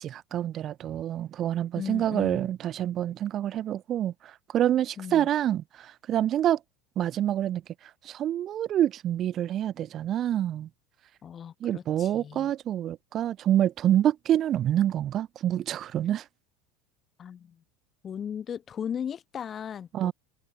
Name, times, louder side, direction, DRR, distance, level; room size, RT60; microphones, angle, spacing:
voice 1, 0.0-6.6 7.0-7.6 8.0-10.7 11.6-16.3 19.9-20.1, right 11 dB, 45° right, 0.3 m, -27 dB
voice 2, 1.8-2.5 5.0-5.3 11.2-12.5 17.2-17.6 18.0-20.1, left 8 dB, 35° left, 0.4 m, -37 dB
hypercardioid pair, 75°, 0 cm